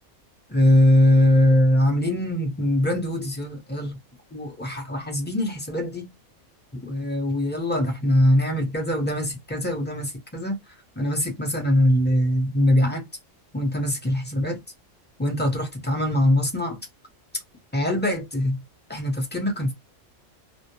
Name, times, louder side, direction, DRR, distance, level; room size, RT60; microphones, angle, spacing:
voice 1, 0.5-4.0 4.3-6.1 6.7-10.6 11.0-13.1 13.5-14.6 15.2-16.8 17.7-18.6 18.9-19.7, left 1 dB, 10° left, 0.5 m, -22 dB
2.2 x 2.0 x 2.9 m
omnidirectional pair, 1.3 m